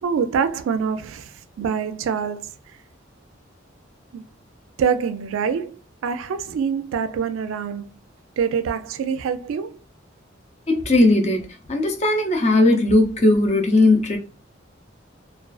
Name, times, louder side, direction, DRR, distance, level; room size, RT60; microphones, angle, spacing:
voice 1, 0.0-2.5 4.1-4.2 4.8-8.0 8.4-9.8, right 6 dB, 85° right, 0.3 m, -25 dB
voice 2, 10.7-11.4 11.7-14.2, left 2 dB, 35° left, 0.5 m, -17 dB
2.3 x 2.3 x 2.3 m
head